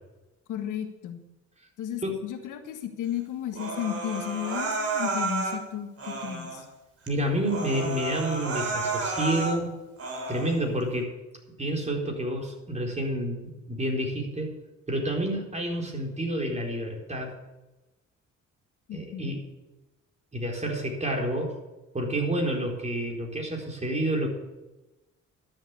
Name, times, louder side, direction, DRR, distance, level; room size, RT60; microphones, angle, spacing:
voice 1, 0.5-1.2 1.8-6.6 18.9-19.3, left 10 dB, 85° left, 6 dB, 1.6 m, -34 dB
Human voice, 3.5-5.6 6.0-6.6 7.1-7.2 7.5-9.6 10.0-10.6, right 3 dB, 50° right, 3.6 m, -31 dB
voice 2, 7.1-9.7 10.3-11.1 11.6-14.5 14.9-17.3 18.9-19.4 20.3-21.6 21.9-24.3, right 1 dB, 20° right, 1 dB, 4.1 m, -29 dB
12.5 x 7.8 x 8.4 m, 1.0 s
cardioid pair, 90°, 30 cm